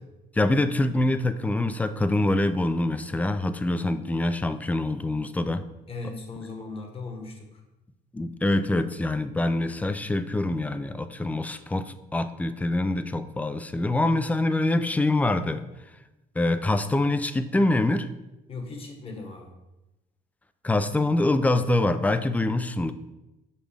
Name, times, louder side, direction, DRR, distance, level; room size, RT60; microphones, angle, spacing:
voice 1, 0.4-5.6 8.1-15.6 16.4-18.1 20.6-22.9, left 2 dB, 10° left, 11 dB, 0.3 m, -25 dB
voice 2, 5.9-7.6 18.5-19.5, left 3 dB, 35° left, 3 dB, 1.2 m, -38 dB
6.0 x 5.3 x 3.3 m, 0.99 s
cardioid pair, 110°, 17 cm